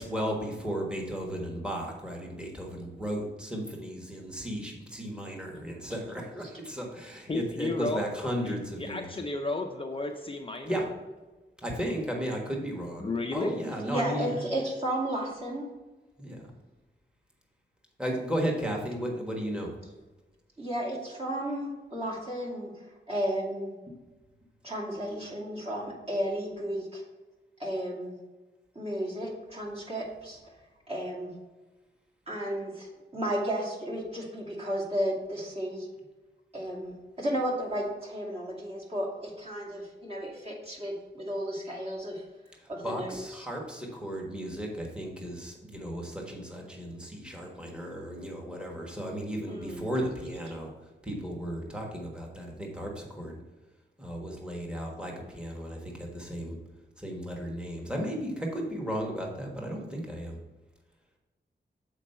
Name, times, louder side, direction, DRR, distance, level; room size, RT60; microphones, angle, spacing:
voice 1, 0.0-9.1 10.7-10.8 11.6-14.4 16.2-16.5 18.0-19.7 23.9-24.0 42.8-50.7 51.0-53.4 54.0-56.6 57.0-60.4, equal, 5° right, -1 dB, 1.4 m, -35 dB
voice 2, 7.3-8.1 8.4-10.8 13.0-13.5, left 2 dB, 30° left, 3 dB, 0.5 m, -33 dB
voice 3, 13.8-15.7 20.6-22.7 23.1-23.7 24.6-27.0 27.6-28.2 28.7-30.4 30.9-31.3 32.3-35.9 36.5-42.2 42.7-43.5 49.5-49.8, equal, 30° right, -4 dB, 2.3 m, -33 dB
7.2 x 4.5 x 5.5 m, 1.2 s
wide cardioid pair, 115°, 19 cm